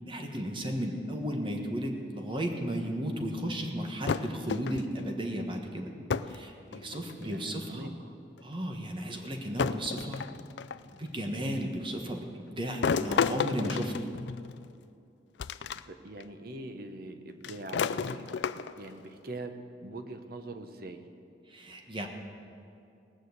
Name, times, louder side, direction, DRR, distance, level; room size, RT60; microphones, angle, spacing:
voice 1, 0.1-5.9 6.3-7.9 8.4-10.2 11.0-13.9 21.5-22.1, equal, 30° right, 3 dB, 1.4 m, -34 dB
sound 1, 4.1-5.0 6.1-6.4 6.7-7.3 8.4-8.5 9.6-10.9 12.8-14.7 15.4-15.8 16.2-16.3 17.4-18.9, left 6 dB, 70° left, 0.4 m, -32 dB
voice 2, 7.2-8.1 15.9-19.5 19.8-21.0, right 2 dB, 55° right, 7 dB, 0.9 m, -43 dB
19.0 x 6.4 x 8.0 m, 2.5 s
head